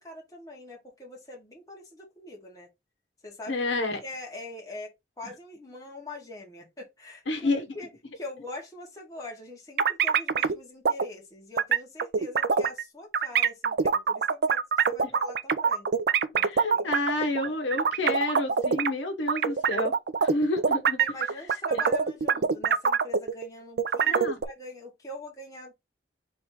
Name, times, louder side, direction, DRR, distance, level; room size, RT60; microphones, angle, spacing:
voice 1, 0.0-2.7 3.2-3.6 4.0-7.9 8.1-15.9 16.3-16.9 21.0-25.7, left 2 dB, 20° left, 1.5 m, -43 dB
voice 2, 3.5-4.0 7.3-7.6 16.3-19.9 20.2-21.0 21.7-21.8 24.1-24.4, left 2 dB, 85° left, 0.9 m, -29 dB
sound 1, 9.8-10.6 10.8-11.1 11.6-12.8 13.1-18.9 19.3-23.5 23.8-24.4, right 6 dB, 55° right, 0.4 m, -24 dB
3.5 x 3.1 x 4.4 m
head